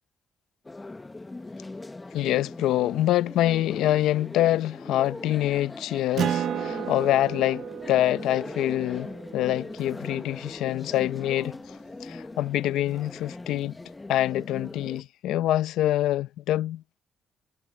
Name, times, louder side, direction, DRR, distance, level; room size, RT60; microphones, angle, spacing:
sound 1, 0.6-15.0, left 2 dB, 20° left, 1.0 m, -40 dB
voice 1, 2.1-11.8 12.0-13.8 14.1-16.8, left 14 dB, 85° left, 0.6 m, -25 dB
Acoustic guitar, 6.2-11.1, right 9 dB, 65° right, 0.4 m, -34 dB
cardioid pair, 90°, 0 cm